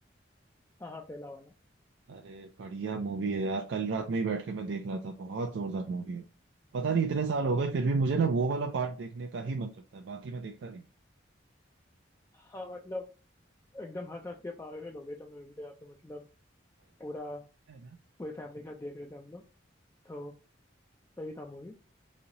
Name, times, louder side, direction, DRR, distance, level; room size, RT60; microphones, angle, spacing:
voice 1, 0.8-1.5 12.3-13.0 13.7-16.2 17.0-17.4 18.2-19.4 20.0-20.3 21.2-21.8, left 2 dB, 15° left, 1 dB, 0.3 m, -41 dB
voice 2, 2.1-6.2 6.7-10.8, right 4 dB, 70° right, 5 dB, 0.4 m, -31 dB
3.0 x 2.7 x 3.8 m, 0.34 s
head